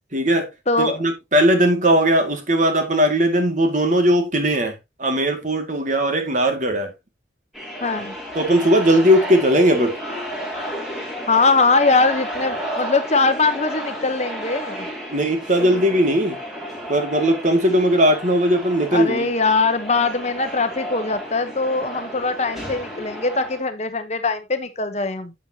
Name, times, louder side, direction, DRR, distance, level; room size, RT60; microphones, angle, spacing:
voice 1, 0.1-0.5 0.8-6.9 8.3-10.0 15.1-16.4 16.9-19.3, equal, 45° right, 2.1 m, -18 dB
voice 2, 0.7-1.0 7.8-8.1 11.3-14.9 18.9-25.3, left 3 dB, 35° left, 1.0 m, -21 dB
sound 1, 7.5-23.6, equal, ahead, 4.5 m, -32 dB
10.5 x 7.5 x 2.8 m
head